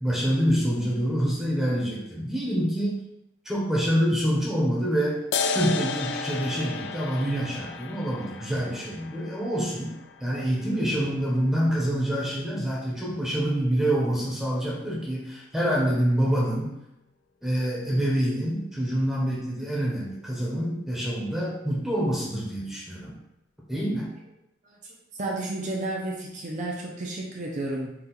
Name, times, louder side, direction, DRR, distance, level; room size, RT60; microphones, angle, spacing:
voice 1, 0.0-3.0 3.4-5.2 5.5-16.7 17.4-23.1 23.7-24.1, equal, ahead, -5 dB, 0.8 m, -26 dB
sound 1, 5.3-12.3, left 4 dB, 65° left, 0.4 m, -34 dB
voice 2, 25.1-27.9, right 2 dB, 40° right, -2 dB, 0.6 m, -32 dB
4.4 x 2.5 x 3.9 m, 0.86 s
head